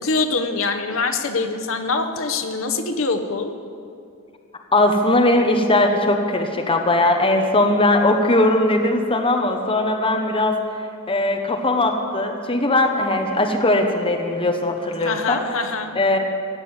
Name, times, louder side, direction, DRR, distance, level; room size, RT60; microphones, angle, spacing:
voice 1, 0.0-3.5 15.0-15.9, left 3 dB, 70° left, 6 dB, 1.0 m, -24 dB
voice 2, 4.7-10.6 11.1-15.4 15.9-16.2, left 2 dB, 25° left, 3 dB, 1.0 m, -19 dB
17.0 x 7.5 x 8.0 m, 2.4 s
head